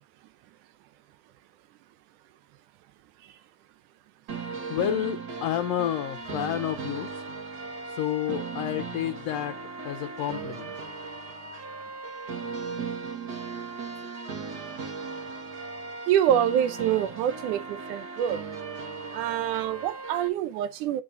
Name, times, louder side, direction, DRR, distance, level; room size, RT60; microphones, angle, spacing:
sound 1, 4.3-20.3, right 4 dB, 40° right, 1.7 m, -37 dB
voice 1, 4.7-7.3 7.8-9.6 9.8-10.8, left 11 dB, 70° left, 1.7 m, -30 dB
voice 2, 16.1-18.4 19.1-21.0, right 10 dB, 90° right, 2.3 m, -26 dB
10.0 x 6.2 x 2.6 m
omnidirectional pair, 3.4 m